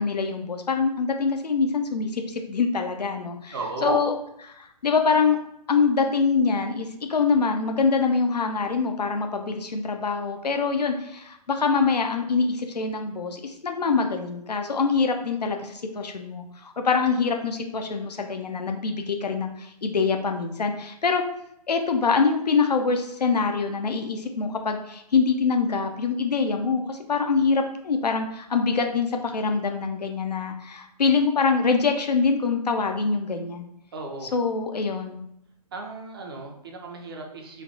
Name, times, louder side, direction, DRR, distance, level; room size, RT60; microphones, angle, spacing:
voice 1, 0.0-3.5 3.8-4.1 4.5-5.4 5.7-21.2 21.7-33.7 34.3-35.2, left 5 dB, 75° left, 5 dB, 0.5 m, -24 dB
voice 2, 3.5-4.0 33.9-34.3 35.7-37.6, right 3 dB, 35° right, 1 dB, 0.5 m, -33 dB
3.2 x 2.3 x 2.6 m, 0.77 s
figure-of-eight pair, 130°, 21 cm